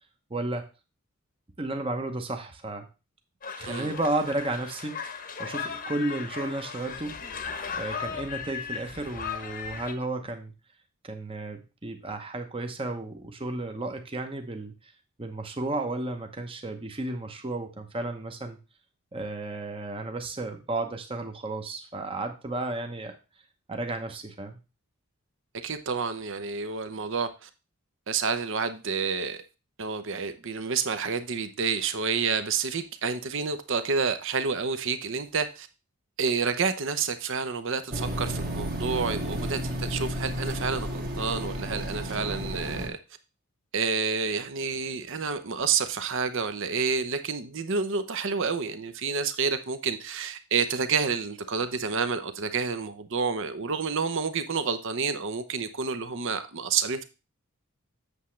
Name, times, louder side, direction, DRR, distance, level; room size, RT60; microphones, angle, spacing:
voice 1, 0.3-0.7 1.6-2.9 3.6-5.0 5.4-7.2 7.7-10.5 11.0-14.9 15.2-18.6 19.1-23.2 23.7-24.6, right 2 dB, 25° right, 5 dB, 0.9 m, -33 dB
sound 1, 3.4-9.9, left 6 dB, 40° left, 0.9 m, -37 dB
voice 2, 25.5-27.5 28.1-29.4 29.8-35.7 36.2-43.0 43.7-57.0, right 5 dB, 60° right, 10 dB, 0.8 m, -29 dB
sound 2, 37.9-42.9, equal, 45° right, 1.6 m, -32 dB
8.2 x 7.1 x 3.2 m, 0.29 s
head